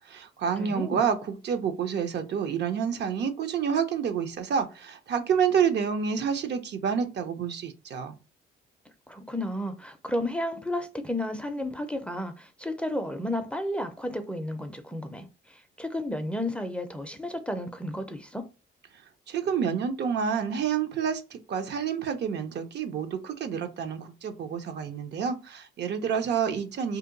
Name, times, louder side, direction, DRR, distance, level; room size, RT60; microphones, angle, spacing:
voice 1, 0.1-8.2 19.3-27.0, right 7 dB, 60° right, 0.6 m, -28 dB
voice 2, 0.6-1.0 9.1-18.4, left 1 dB, 5° left, 0.5 m, -32 dB
2.8 x 2.1 x 3.7 m
cardioid pair, 90°, 20 cm